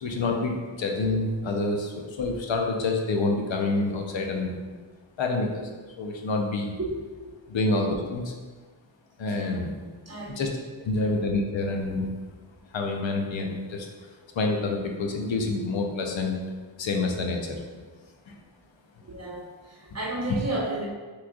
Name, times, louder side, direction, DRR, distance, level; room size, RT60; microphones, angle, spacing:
voice 1, 0.0-4.6 5.2-5.7 6.0-6.7 7.5-8.3 9.2-9.7 10.4-10.5 10.8-12.1 12.7-13.9 14.3-16.4 16.8-17.6 18.3-18.4 20.3-20.4, left 3 dB, 75° left, 2 dB, 0.7 m, -27 dB
voice 2, 9.2-9.7 10.1-10.5 19.0-20.9, right 2 dB, 35° right, -3 dB, 1.0 m, -33 dB
6.0 x 3.2 x 2.3 m, 1.4 s
wide cardioid pair, 65°, 46 cm